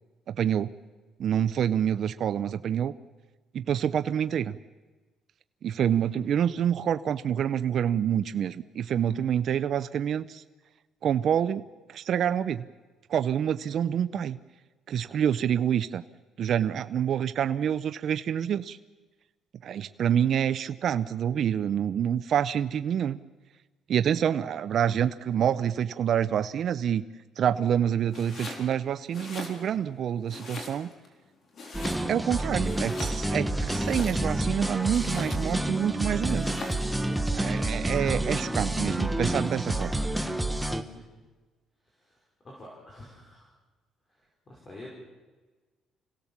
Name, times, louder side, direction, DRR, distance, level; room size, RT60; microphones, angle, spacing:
voice 1, 0.3-0.7 1.2-2.9 3.5-4.6 5.6-10.4 11.0-11.6 11.9-12.6 13.1-14.4 14.9-16.0 16.4-18.8 19.6-23.2 23.9-27.0 27.4-30.9 32.1-36.7 37.3-39.9, right 9 dB, 55° right, 12 dB, 0.6 m, -27 dB
Domestic sounds home sounds, 28.1-28.7 29.0-29.9 30.3-31.1 31.5-32.3 32.6-34.4 34.9-35.6 36.2-36.9, left 3 dB, 50° left, 4.5 m, -41 dB
sound 1, 31.7-40.8, right 1 dB, 5° right, 1.2 m, -29 dB
voice 2, 41.9-43.5 44.5-44.9, left 1 dB, 30° left, -3 dB, 5.6 m, -48 dB
26.0 x 17.0 x 7.3 m, 1.3 s
cardioid pair, 120°, 0 cm